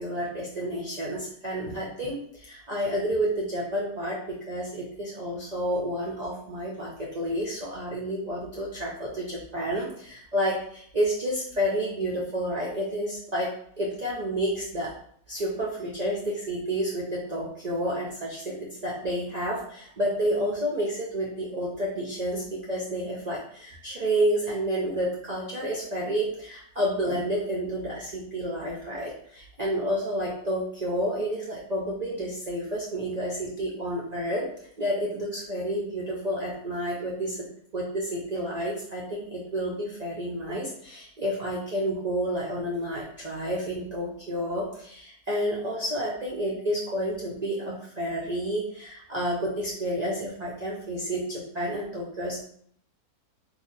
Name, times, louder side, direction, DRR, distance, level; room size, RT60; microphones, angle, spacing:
voice 1, 0.0-13.5 13.8-14.9 15.3-34.5 34.8-37.5 37.7-52.4, equal, 85° right, -5 dB, 0.3 m, -30 dB
2.8 x 2.3 x 3.9 m, 0.63 s
omnidirectional pair, 1.6 m